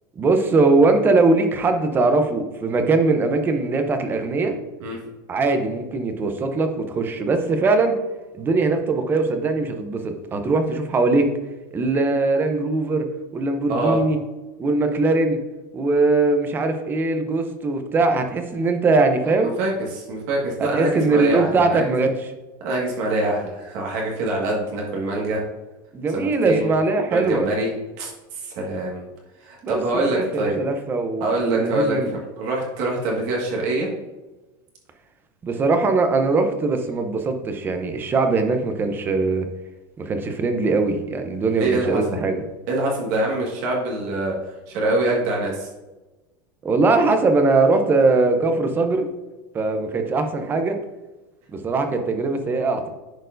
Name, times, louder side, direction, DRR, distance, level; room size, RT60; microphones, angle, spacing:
voice 1, 0.2-4.5 5.3-8.0 8.4-11.3 11.7-13.0 13.3-14.2 14.6-15.4 15.7-19.5 20.7-22.1 25.9-27.5 29.6-32.2 35.4-39.5 40.0-42.4 46.6-49.1 49.5-50.8 51.5-52.9, right 3 dB, 20° right, 7 dB, 0.6 m, -21 dB
voice 2, 19.4-21.8 22.6-25.4 26.1-26.7 27.1-27.7 28.0-29.0 29.4-30.6 31.2-33.9 41.4-42.0 42.7-44.3 44.7-45.7, right 2 dB, 55° right, -2 dB, 1.7 m, -24 dB
10.0 x 4.5 x 2.6 m, 1.1 s
supercardioid pair, 160°, 11 cm